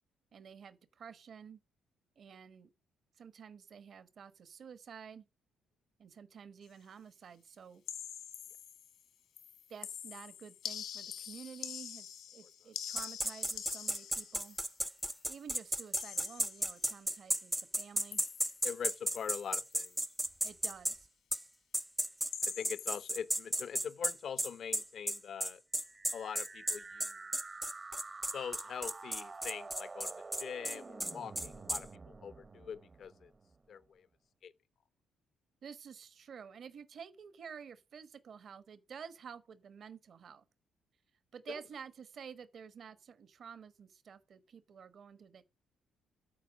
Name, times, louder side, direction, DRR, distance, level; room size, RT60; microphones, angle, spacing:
voice 1, 0.3-1.6 2.2-2.7 3.2-5.2 6.0-7.8 9.7-14.6 15.3-18.2 20.4-21.1 35.6-40.4 41.3-45.4, right 7 dB, 55° right, 1.2 m, -51 dB
sound 1, 7.9-9.0 9.4-15.3 16.0-16.9 18.1-18.8 19.2-19.5 19.7-20.0 22.3-23.2, left 9 dB, 75° left, 1.8 m, -46 dB
sound 2, 13.0-21.0 21.3-21.4 21.7-31.8, right 1 dB, 5° right, 0.4 m, -34 dB
voice 2, 18.6-20.0 22.4-25.6 26.1-27.2 28.3-33.3 33.7-34.1 34.4-34.5 41.5-41.6, left 7 dB, 60° left, 0.8 m, -43 dB
sound 3, 25.8-33.7, right 3 dB, 30° right, 0.8 m, -49 dB
10.0 x 4.4 x 6.3 m
cardioid pair, 90°, 0 cm